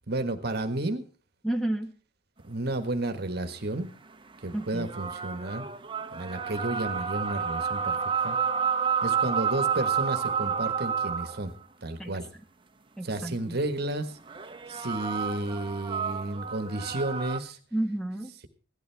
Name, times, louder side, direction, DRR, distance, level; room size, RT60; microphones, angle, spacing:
voice 1, 0.1-1.0 2.4-3.9 4.4-5.7 6.1-8.0 8.2-8.4 9.0-11.5 11.8-12.3 13.0-14.2 14.7-17.6, right 2 dB, 55° right, 8 dB, 1.5 m, -32 dB
voice 2, 1.4-1.9 4.5-4.9 12.0-12.2 13.0-13.6 17.7-18.3, right 1 dB, 5° left, 4 dB, 1.6 m, -31 dB
sound 1, 4.6-11.4 14.3-17.4, right 7 dB, 25° right, 1.2 m, -30 dB
16.5 x 12.0 x 3.4 m, 0.40 s
head